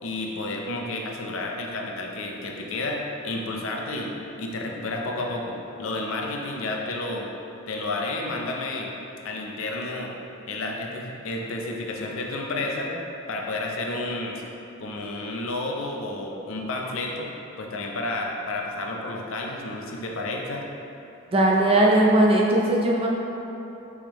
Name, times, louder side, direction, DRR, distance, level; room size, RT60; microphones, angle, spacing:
voice 1, 0.0-7.3 7.7-8.9 9.2-10.1 10.5-12.9 13.3-14.4 14.8-17.3 17.6-20.6, left 2 dB, 70° left, 0 dB, 0.5 m, -31 dB
voice 2, 21.3-23.1, right 1 dB, 25° right, -2 dB, 0.4 m, -19 dB
4.7 x 3.6 x 2.9 m, 3.0 s
head